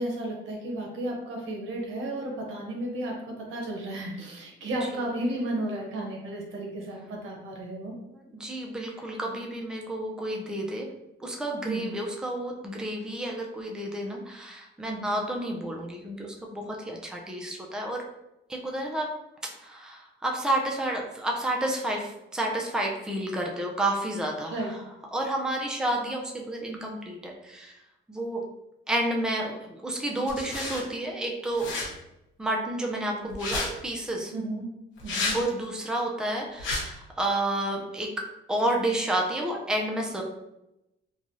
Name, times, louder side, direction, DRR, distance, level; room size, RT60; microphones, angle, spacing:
voice 1, 0.0-7.9 8.8-8.9 11.6-12.0 14.9-15.1 24.5-24.7 34.3-34.7 35.0-35.4, right 1 dB, 80° right, 0 dB, 0.8 m, -33 dB
voice 2, 8.3-10.9 11.2-18.0 18.5-19.1 19.6-24.8 25.1-27.7 28.1-28.4 28.9-31.7 32.4-34.3 35.3-40.2, right 1 dB, 5° right, 0 dB, 0.5 m, -30 dB
sound 1, 30.3-30.8 31.5-31.9 33.3-33.7 35.0-35.4 36.6-36.8, left 3 dB, 75° left, 1.0 m, -30 dB
3.1 x 2.3 x 2.6 m, 0.89 s
cardioid pair, 90°, 20 cm